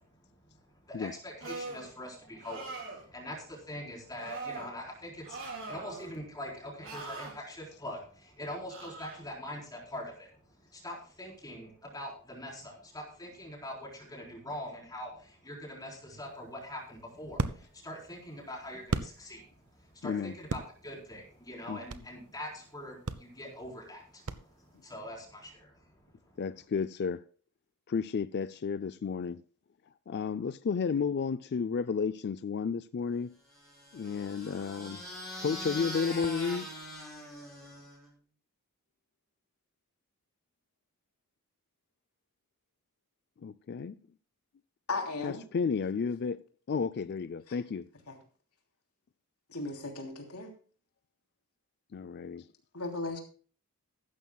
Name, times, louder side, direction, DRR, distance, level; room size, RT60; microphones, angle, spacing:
voice 1, 0.0-26.4, left 1 dB, 15° left, 4.1 m, -44 dB
sound 1, 1.4-1.9 2.4-3.0 4.2-4.7 5.2-6.1 6.8-7.3 8.7-9.2, right 3 dB, 60° right, 4.1 m, -41 dB
sound 2, 16.2-19.7 20.0-22.2 22.6-22.7 23.0-24.9, right 2 dB, 80° right, 0.9 m, -37 dB
voice 2, 20.0-20.4 21.7-21.8 26.4-27.2 27.9-29.4 30.1-33.3 33.9-35.0 35.4-36.7 43.4-44.0 45.2-46.4 46.7-47.9 51.9-52.5, left 5 dB, 50° left, 0.4 m, -32 dB
sound 3, 33.5-38.1, left 1 dB, ahead, 5.8 m, -42 dB
voice 3, 44.9-45.4 48.1-48.2 49.5-50.5 52.7-53.2, left 3 dB, 90° left, 3.1 m, -36 dB
15.0 x 12.5 x 2.3 m
head